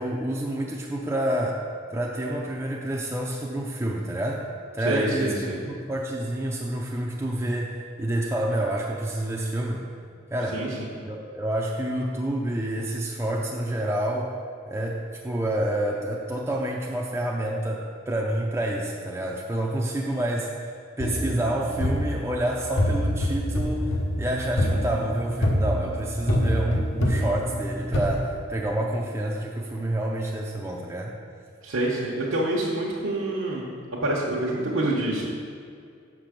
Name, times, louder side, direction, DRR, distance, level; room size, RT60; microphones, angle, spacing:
voice 1, 0.0-1.6 1.9-4.5 4.7-9.9 10.3-10.7 11.0-14.3 14.7-31.2, right 1 dB, 15° right, -2 dB, 0.5 m, -28 dB
voice 2, 4.8-5.6 10.5-10.9 31.6-33.6 34.0-35.3, right 1 dB, 75° right, -6 dB, 1.0 m, -26 dB
sound 1, 21.0-28.2, equal, 60° left, 0.9 m, -26 dB
6.6 x 6.0 x 5.1 m, 2.3 s
head